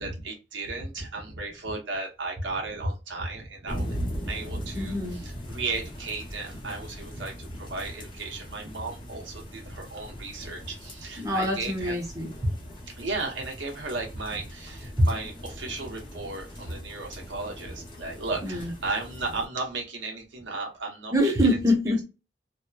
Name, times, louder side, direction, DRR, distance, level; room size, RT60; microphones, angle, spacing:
voice 1, 0.0-4.0 4.2-12.0 12.9-21.3, right 3 dB, 85° right, 0.9 m, -35 dB
sound 1, 3.7-19.5, equal, 25° left, 0.8 m, -40 dB
voice 2, 4.7-5.2 11.2-12.5 15.0-15.1 18.4-18.7 21.1-22.0, equal, 20° right, 0.7 m, -24 dB
2.8 x 2.0 x 2.3 m
head